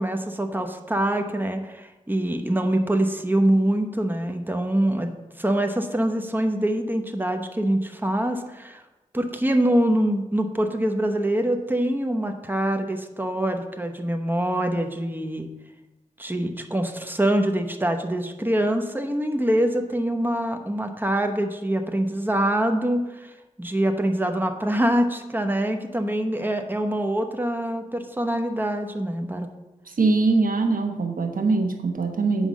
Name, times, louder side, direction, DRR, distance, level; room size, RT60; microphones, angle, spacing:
voice 1, 0.0-5.1 5.4-8.8 9.1-15.5 16.2-29.5, right 1 dB, 15° right, 5 dB, 1.0 m, -24 dB
voice 2, 30.0-32.5, right 3 dB, 80° right, 5 dB, 1.0 m, -22 dB
8.3 x 5.2 x 6.2 m, 1.0 s
wide cardioid pair, 60°, 14 cm